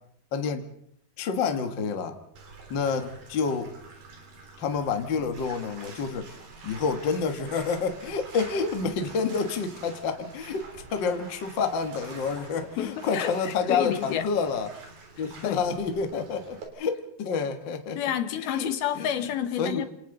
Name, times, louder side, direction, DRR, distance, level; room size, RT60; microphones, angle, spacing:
voice 1, 0.3-0.7 1.2-2.2 2.7-3.8 4.6-6.3 6.6-10.6 10.9-14.7 15.2-18.0 18.4-18.7 18.9-19.1 19.6-19.9, left 5 dB, 50° left, 1.4 m, -28 dB
Bathtub (filling or washing), 2.3-16.7, right 4 dB, 65° right, 5.3 m, -47 dB
voice 2, 12.8-14.3 15.4-15.6 18.0-19.9, left 10 dB, 75° left, 3.3 m, -29 dB
29.0 x 27.5 x 4.0 m
omnidirectional pair, 4.5 m